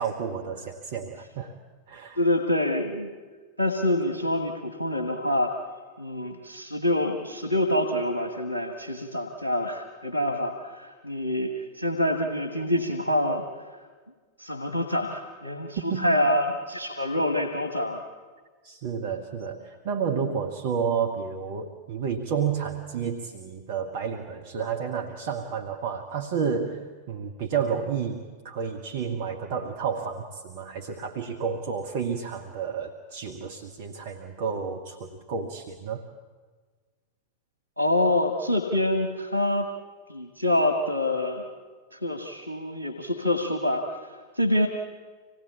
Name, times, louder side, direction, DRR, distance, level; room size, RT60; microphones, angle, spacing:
voice 1, 0.0-1.6 1.9-2.2 15.8-16.2 18.6-36.0, right 6 dB, 50° right, 3 dB, 1.4 m, -31 dB
voice 2, 2.2-3.1 3.6-5.5 6.0-13.5 14.4-18.0 37.8-39.7 40.1-41.5 41.9-44.0 44.3-44.7, left 1 dB, 85° left, 7 dB, 1.6 m, -26 dB
26.0 x 18.5 x 8.4 m, 1.5 s
figure-of-eight pair, 90°, 0 cm